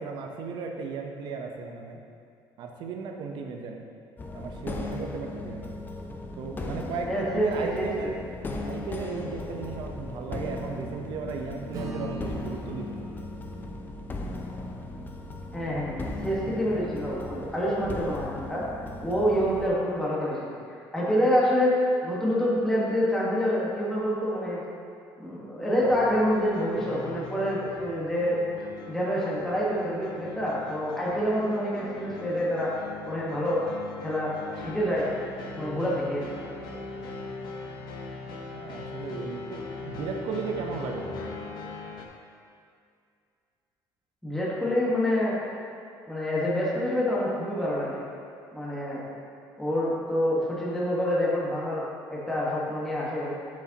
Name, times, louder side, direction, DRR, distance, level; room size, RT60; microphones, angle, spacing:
voice 1, 0.0-2.0 2.6-3.9 4.3-5.8 6.4-8.2 8.7-13.0 38.5-41.2, right 5 dB, 65° right, 3 dB, 0.8 m, -35 dB
sound 1, 4.2-19.7, left 2 dB, 25° left, 0.6 m, -37 dB
voice 2, 7.0-8.1 15.5-18.6 19.0-24.6 25.2-28.4 28.9-32.7 33.1-33.6 34.0-34.3 34.6-35.1 35.5-36.3 44.2-45.4 46.1-48.0 48.5-49.0 49.6-51.8 52.1-53.4, equal, 5° left, -7 dB, 1.5 m, -27 dB
Acoustic guitar / Strum, 11.7-16.5, equal, 40° right, 1.1 m, -43 dB
sound 2, 25.8-42.1, left 3 dB, 60° left, 0.9 m, -40 dB
8.3 x 6.2 x 2.9 m, 2.4 s
cardioid pair, 125°, 8 cm